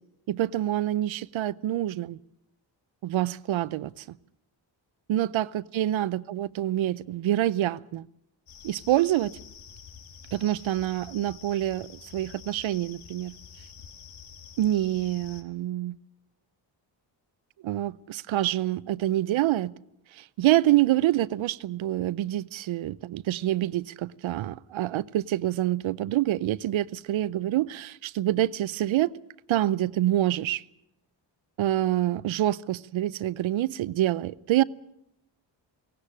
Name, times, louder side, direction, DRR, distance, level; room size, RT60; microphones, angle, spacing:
voice 1, 0.3-2.2 3.0-4.2 5.1-8.1 8.6-9.4 10.3-13.3 14.6-16.0 17.6-19.7 20.1-29.1 29.5-30.6 31.6-34.6, right 14 dB, 85° right, 0.7 m, -26 dB
sound 1, 8.5-15.4, left 7 dB, 90° left, 1.9 m, -48 dB
18.5 x 16.5 x 9.8 m
wide cardioid pair, 175°, 46 cm